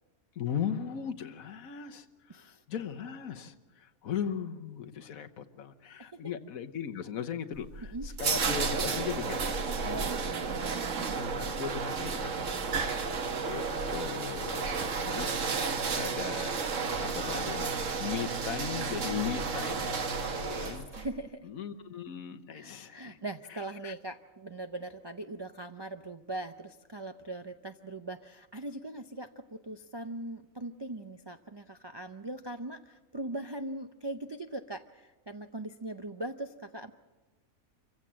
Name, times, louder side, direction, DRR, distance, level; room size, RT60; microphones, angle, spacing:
voice 1, 0.3-9.6 11.4-12.5 13.3-13.6 13.9-20.0 20.4-20.9 21.4-23.2 23.5-23.9, left 8 dB, 75° left, 8 dB, 1.4 m, -38 dB
voice 2, 2.3-2.6 6.1-6.2 7.9-8.1 9.8-11.2 15.0-15.3 15.5-15.8 20.3-21.5 22.5-36.9, right 2 dB, 40° right, 7 dB, 0.3 m, -41 dB
sound 1, 7.5-21.1, right 4 dB, 60° right, 1.6 m, -32 dB
25.5 x 15.5 x 7.5 m, 1.2 s
omnidirectional pair, 1.5 m